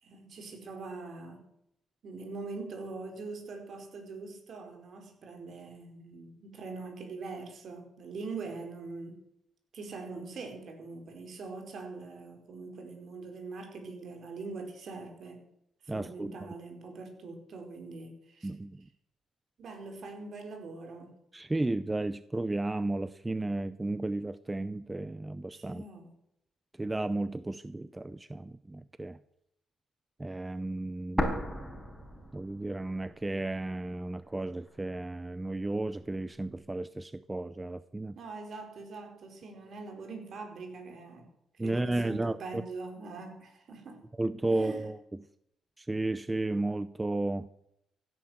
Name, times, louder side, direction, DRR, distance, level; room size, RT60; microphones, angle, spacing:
voice 1, 0.0-1.5 2.0-9.2 9.7-15.5 15.8-18.5 19.6-21.2 25.5-26.1 38.1-41.3 41.6-44.0 44.5-44.9, right 3 dB, 60° right, 4.4 m, -43 dB
voice 2, 15.9-16.3 18.4-18.8 21.3-25.8 26.8-29.2 30.2-31.5 32.3-38.2 41.6-42.6 44.2-45.0 45.8-47.5, right 2 dB, 15° right, 0.6 m, -33 dB
sound 1, 31.2-33.1 33.4-33.5 34.2-35.2, equal, ahead, 4.5 m, -35 dB
16.0 x 10.5 x 7.9 m
cardioid pair, 90°, 0 cm